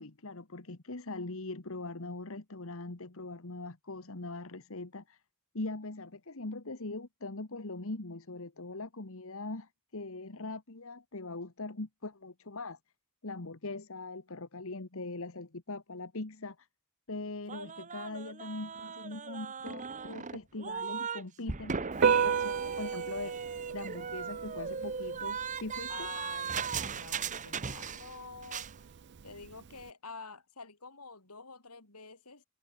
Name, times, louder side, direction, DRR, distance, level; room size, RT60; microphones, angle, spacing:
voice 1, 0.0-5.2 5.5-12.8 13.2-16.7 17.1-23.4 23.7-26.1, left 2 dB, 65° left, 1.5 m, -41 dB
sound 1, 17.5-21.2 21.5-28.2 28.4-28.7, right 6 dB, 35° right, 1.0 m, -38 dB
Piano, 21.9-29.9, right 7 dB, 50° right, 0.5 m, -34 dB
voice 2, 25.9-28.7 29.2-32.4, left 4 dB, 90° left, 6.0 m, -48 dB
head